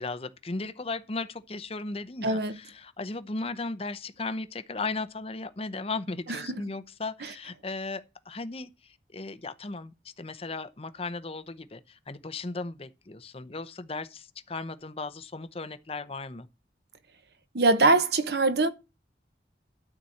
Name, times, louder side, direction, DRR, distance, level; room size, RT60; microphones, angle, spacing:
voice 1, 0.0-16.5, left 3 dB, 30° left, 0.7 m, -36 dB
voice 2, 2.2-2.6 17.5-18.7, right 2 dB, 60° right, 0.9 m, -22 dB
12.5 x 4.3 x 7.7 m
head